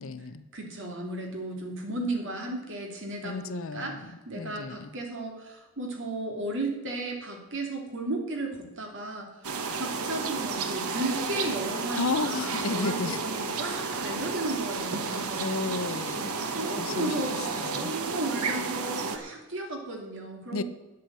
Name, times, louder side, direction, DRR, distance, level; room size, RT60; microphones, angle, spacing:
voice 1, 0.0-0.4 3.2-4.1 4.3-4.9 12.0-13.2 15.4-16.3 16.8-17.1 17.6-17.9 20.5-20.6, left 3 dB, 60° left, 13 dB, 0.7 m, -32 dB
voice 2, 0.5-15.5 16.5-20.6, right 2 dB, 55° right, 1 dB, 2.7 m, -34 dB
sound 1, 9.4-19.2, right 4 dB, 80° right, 1.2 m, -32 dB
10.0 x 8.4 x 7.6 m, 1.0 s
head